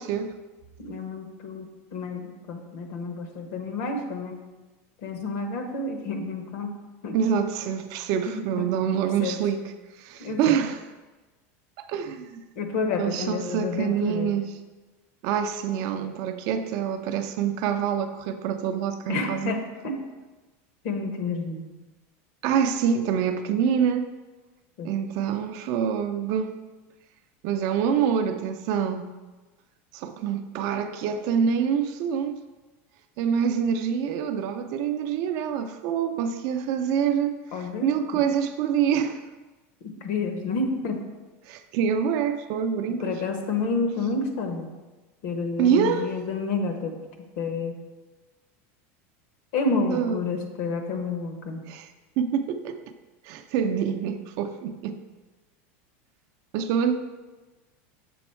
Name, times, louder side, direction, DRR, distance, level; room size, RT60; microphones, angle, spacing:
voice 1, 0.8-4.4 5.0-6.7 7.0-7.2 8.3-8.7 8.9-9.4 10.2-10.6 12.6-14.3 19.1-19.9 20.8-21.7 24.8-24.9 37.5-38.2 39.8-41.0 42.9-44.7 45.2-46.9 47.4-47.7 49.5-51.6, left 3 dB, 60° left, 5 dB, 1.0 m, -30 dB
voice 2, 7.1-9.7 10.0-10.8 11.8-12.4 13.0-14.5 15.2-19.5 22.4-24.1 24.8-26.6 27.4-29.1 29.9-32.4 33.2-39.2 41.5-43.2 45.6-46.1 49.9-50.2 51.7-51.9 52.2-52.8 53.2-55.0 56.5-56.9, right 7 dB, 50° right, 8 dB, 0.5 m, -26 dB
7.0 x 3.5 x 4.5 m, 1.2 s
supercardioid pair, 145°, 7 cm